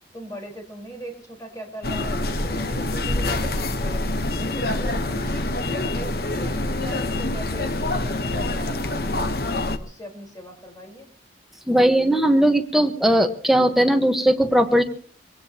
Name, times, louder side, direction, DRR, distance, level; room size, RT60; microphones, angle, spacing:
voice 1, 0.1-4.1 4.4-5.5 5.9-9.3 9.7-11.1, right 1 dB, 20° left, 2 dB, 4.3 m, -39 dB
sound 1, 1.8-9.8, left 2 dB, 55° left, 1.0 m, -26 dB
voice 2, 11.7-14.8, right 1 dB, ahead, 5 dB, 1.2 m, -18 dB
24.5 x 18.0 x 2.9 m, 0.43 s
head